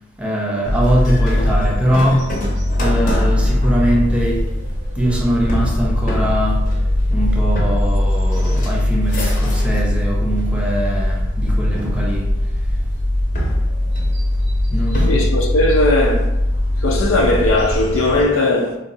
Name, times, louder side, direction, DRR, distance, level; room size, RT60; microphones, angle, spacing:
voice 1, 0.2-2.3 2.8-4.5 4.9-6.7 7.1-12.3 14.7-15.2, equal, 5° right, 0.5 m, -21 dB
sound 1, 0.6-18.2, left 1 dB, 65° right, 0.7 m, -20 dB
sound 2, 0.8-10.0 10.3-11.0 11.7-12.8 13.3-15.4, equal, 45° left, 0.7 m, -28 dB
voice 2, 15.0-16.3 16.8-18.8, left 2 dB, 85° left, 0.5 m, -17 dB
3.9 x 2.2 x 2.6 m
head